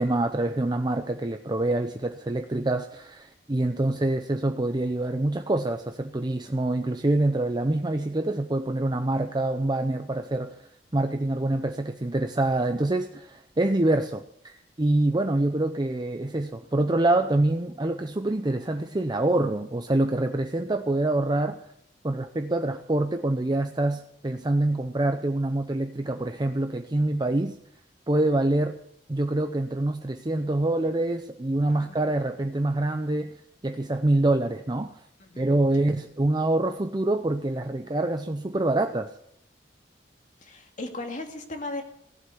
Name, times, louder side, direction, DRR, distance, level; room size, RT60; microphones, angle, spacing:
voice 1, 0.0-21.6 22.0-27.6 28.1-28.7 29.1-33.3 33.6-34.9 35.4-39.1, right 2 dB, 25° right, 6 dB, 0.7 m, -26 dB
voice 2, 31.7-32.0 35.2-35.5 40.4-41.8, left 2 dB, 45° left, 4 dB, 2.3 m, -36 dB
17.0 x 8.1 x 8.2 m, 0.71 s
head